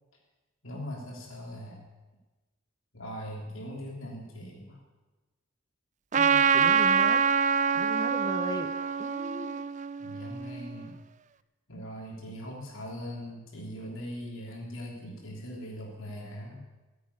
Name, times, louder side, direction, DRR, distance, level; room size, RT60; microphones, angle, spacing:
voice 1, 0.6-1.9 2.9-4.8 10.0-11.0 11.7-16.6, equal, 70° left, -2 dB, 3.3 m, -40 dB
Trumpet, 6.1-10.8, right 6 dB, 35° right, 0.4 m, -25 dB
voice 2, 6.2-7.2 7.7-8.7 9.0-9.6, left 1 dB, 20° left, 8 dB, 0.9 m, -37 dB
15.5 x 8.5 x 9.9 m, 1.2 s
head